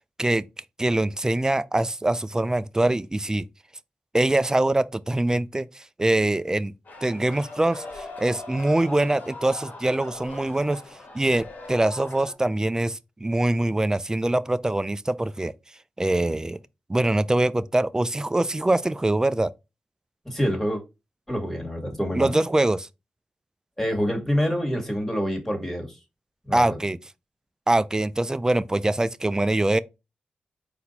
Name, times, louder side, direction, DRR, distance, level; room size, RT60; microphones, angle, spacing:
voice 1, 0.8-3.5 4.1-6.7 7.0-10.8 11.1-15.5 16.0-16.6 16.9-19.5 22.1-22.9 26.5-27.0 27.7-29.8, right 1 dB, 20° right, 0.4 m, -23 dB
sound 1, 6.8-12.3, left 2 dB, 60° left, 1.3 m, -41 dB
voice 2, 20.3-20.8 21.3-22.3 23.8-26.0 26.4-26.8, equal, 10° left, 1.8 m, -26 dB
4.2 x 2.7 x 4.0 m
cardioid pair, 45°, 3 cm